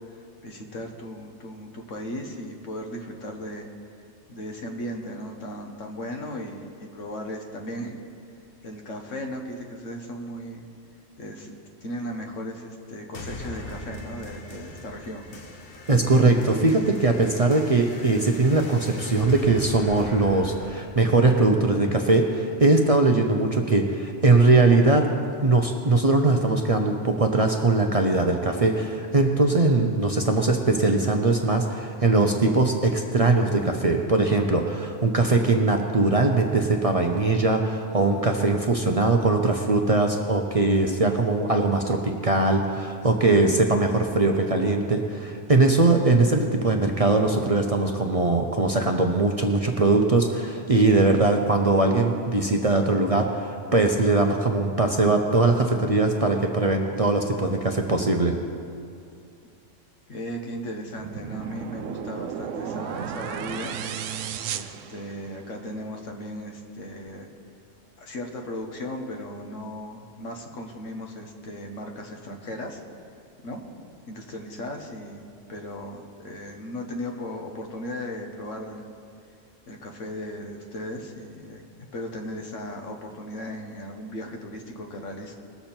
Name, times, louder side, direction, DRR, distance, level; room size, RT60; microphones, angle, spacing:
voice 1, 0.0-3.7 4.3-8.0 8.6-10.7 11.2-11.5 11.8-15.3 60.1-63.7 64.5-67.3 68.0-72.8 73.4-73.6 74.1-78.9 79.7-81.6 81.9-85.3, equal, 75° left, 3 dB, 1.5 m, -36 dB
sound 1, 13.1-22.2, left 2 dB, 50° left, 1.1 m, -41 dB
voice 2, 15.9-25.1 25.4-58.3, right 3 dB, 35° right, 2 dB, 0.6 m, -21 dB
sound 2, 61.0-65.6, right 9 dB, 80° right, 0.9 m, -34 dB
20.5 x 6.9 x 4.4 m, 2.4 s
omnidirectional pair, 1.3 m